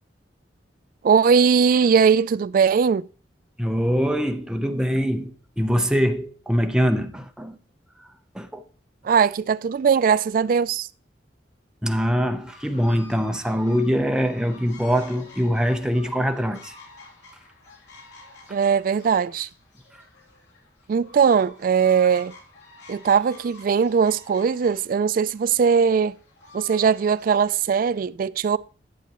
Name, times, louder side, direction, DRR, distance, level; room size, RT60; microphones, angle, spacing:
voice 1, 1.0-3.1 9.0-10.9 18.5-19.5 20.9-22.3 22.9-26.1 26.5-28.6, right 6 dB, 50° right, 0.3 m, -20 dB
voice 2, 3.6-7.6 8.3-8.6 11.8-16.7, equal, 5° right, 0.7 m, -23 dB
sound 1, 12.4-28.0, left 2 dB, 80° left, 3.2 m, -49 dB
11.0 x 7.9 x 3.0 m
head